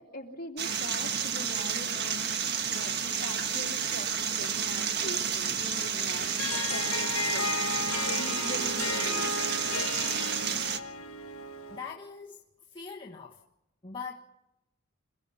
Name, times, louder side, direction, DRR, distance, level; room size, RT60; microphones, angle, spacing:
voice 1, 0.0-2.3 2.7-7.6 8.1-9.4, left 1 dB, 45° left, 1 dB, 3.1 m, -42 dB
sound 1, 0.6-10.8, right 7 dB, 50° right, 1.5 m, -31 dB
Harp, 6.1-11.9, left 3 dB, 80° left, 1.7 m, -34 dB
voice 2, 11.7-12.4 12.7-13.4 13.8-14.2, left 5 dB, 25° left, -2 dB, 1.4 m, -41 dB
27.5 x 17.0 x 5.6 m, 0.85 s
head